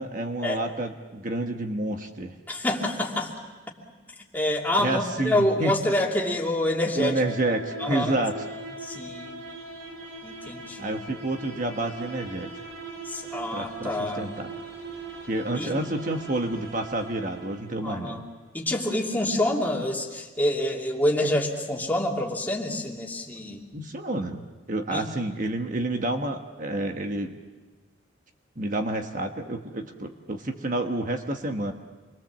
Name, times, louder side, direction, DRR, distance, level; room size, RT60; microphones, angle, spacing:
voice 1, 0.0-2.3 4.8-5.8 6.9-8.3 10.8-12.5 13.5-14.6 15.3-18.2 23.7-27.4 28.6-31.7, right 2 dB, 45° right, 4 dB, 1.3 m, -29 dB
voice 2, 2.5-3.3 4.3-7.2 7.8-8.2 8.8-9.4 10.2-11.0 13.0-14.3 15.5-15.7 17.8-18.2 18.5-23.6 24.9-25.1, left 1 dB, 10° left, -1 dB, 2.7 m, -27 dB
sound 1, 5.4-18.2, right 2 dB, 90° right, 5.1 m, -41 dB
27.5 x 22.5 x 7.4 m, 1.3 s
head